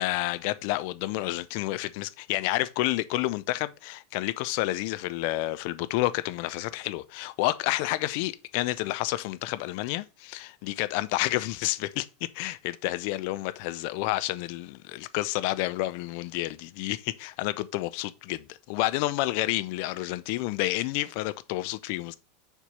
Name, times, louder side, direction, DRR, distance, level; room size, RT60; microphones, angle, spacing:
voice 1, 0.0-22.2, left 17 dB, 50° left, 0.6 m, -30 dB
7.0 x 4.5 x 5.3 m
figure-of-eight pair, 85°, 0 cm